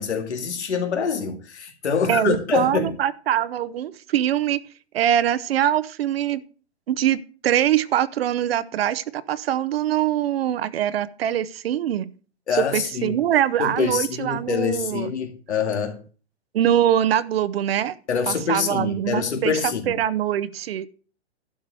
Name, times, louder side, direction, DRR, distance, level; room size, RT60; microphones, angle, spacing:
voice 1, 0.0-2.9 12.5-13.2 13.6-16.0 18.1-20.0, left 6 dB, 85° left, 2.2 m, -25 dB
voice 2, 2.1-4.6 4.9-6.4 6.9-12.1 12.6-15.1 16.5-17.9 18.3-20.9, right 11 dB, 60° right, 0.8 m, -23 dB
12.0 x 5.0 x 7.6 m
hypercardioid pair, 140°, 33 cm